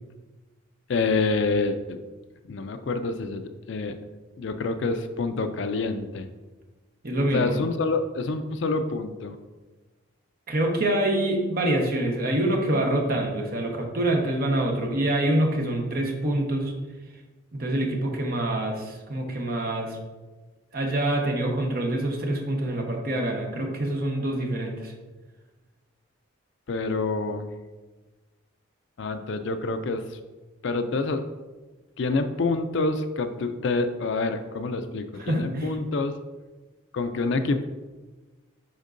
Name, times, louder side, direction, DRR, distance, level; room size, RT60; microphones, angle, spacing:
voice 1, 0.9-2.0 2.4-4.0 4.4-6.3 7.3-9.4 26.7-27.5 29.0-30.2 30.6-31.2 32.0-36.1 36.9-37.6, left 3 dB, 55° left, 8 dB, 0.4 m, -27 dB
voice 2, 7.0-7.5 10.5-16.7 17.5-20.0 20.7-24.9 35.2-35.8, right 1 dB, 45° right, 1 dB, 0.9 m, -26 dB
10.5 x 3.7 x 2.6 m, 1.2 s
head